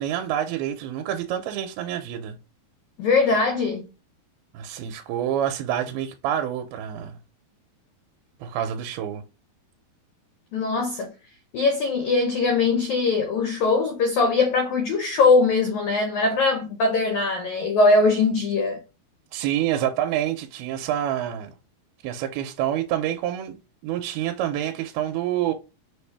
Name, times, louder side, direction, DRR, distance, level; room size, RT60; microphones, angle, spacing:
voice 1, 0.0-2.4 4.5-7.2 8.4-9.2 19.3-21.5 22.0-23.6 23.8-25.5, right 11 dB, 80° right, 2.5 m, -27 dB
voice 2, 3.0-3.9 10.5-11.1 11.5-18.8, left 3 dB, 85° left, 1.7 m, -21 dB
6.1 x 2.6 x 3.3 m
omnidirectional pair, 4.6 m